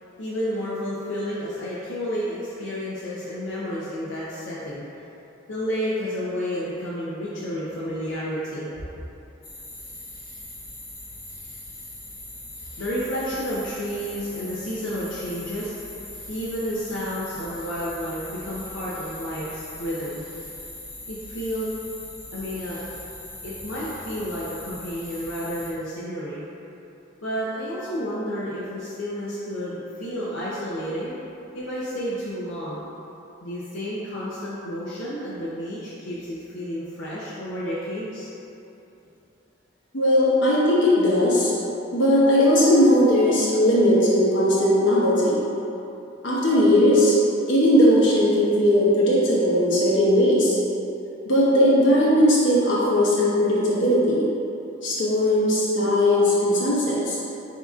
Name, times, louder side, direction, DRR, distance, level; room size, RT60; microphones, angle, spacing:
voice 1, 0.2-5.1 5.5-9.0 12.7-15.9 16.3-20.2 21.1-21.7 22.3-22.8 23.4-26.4 27.2-31.1 31.5-32.9 33.4-38.3, equal, 90° left, -8 dB, 0.7 m, -31 dB
sound 1, 9.4-25.7, left 1 dB, 50° left, 1.1 m, -40 dB
voice 2, 39.9-41.5 41.9-45.4 46.2-47.2 47.5-50.5 51.3-54.2 54.8-57.2, left 1 dB, 70° left, -7 dB, 1.1 m, -18 dB
7.9 x 2.9 x 2.4 m, 2.9 s
head